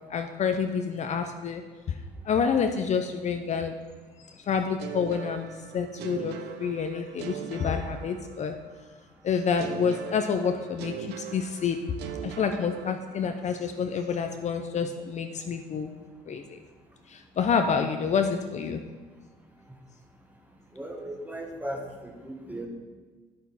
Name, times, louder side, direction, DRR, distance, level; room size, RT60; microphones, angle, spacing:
voice 1, 0.1-1.6 1.9-2.0 2.2-3.8 4.4-5.5 5.7-8.5 9.2-12.0 12.2-15.9 16.3-16.6 17.1-18.8, left 6 dB, 45° left, 6 dB, 0.6 m, -28 dB
sound 1, 4.8-8.7 9.6-13.5, right 10 dB, 90° right, 0.7 m, -41 dB
voice 2, 20.7-22.7, right 1 dB, 10° right, 2 dB, 1.3 m, -37 dB
8.6 x 8.1 x 4.1 m, 1.4 s
cardioid pair, 110°, 17 cm